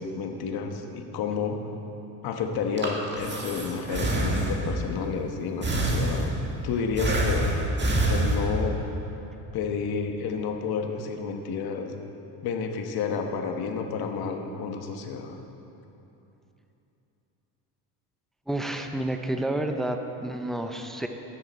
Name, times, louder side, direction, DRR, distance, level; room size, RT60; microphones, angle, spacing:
voice 1, 0.0-1.6 2.2-7.5 8.0-8.8 9.5-12.0 12.4-15.4, left 5 dB, 60° left, 4 dB, 1.3 m, -30 dB
Breathing, 2.5-4.8 5.6-6.5 7.0-8.8, right 1 dB, 25° right, 1.9 m, -26 dB
voice 2, 18.5-21.1, right 1 dB, ahead, 5 dB, 0.6 m, -30 dB
13.5 x 9.9 x 4.3 m, 2.9 s
supercardioid pair, 95°, 42 cm